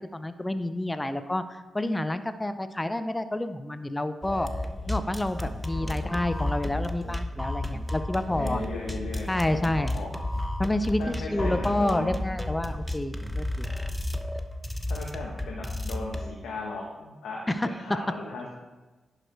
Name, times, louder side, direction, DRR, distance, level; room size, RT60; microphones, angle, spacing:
voice 1, 0.0-4.5 4.9-8.6 9.3-9.9 10.6-13.7 17.5-18.0, left 1 dB, 20° left, 10 dB, 0.6 m, -29 dB
sound 1, 4.2-16.3, left 1 dB, ahead, 0.9 m, -32 dB
voice 2, 5.8-6.2 8.3-10.1 11.0-12.2 14.9-18.5, left 3 dB, 80° left, -2 dB, 1.2 m, -37 dB
11.0 x 4.8 x 4.5 m, 1.2 s
supercardioid pair, 45°, 0 cm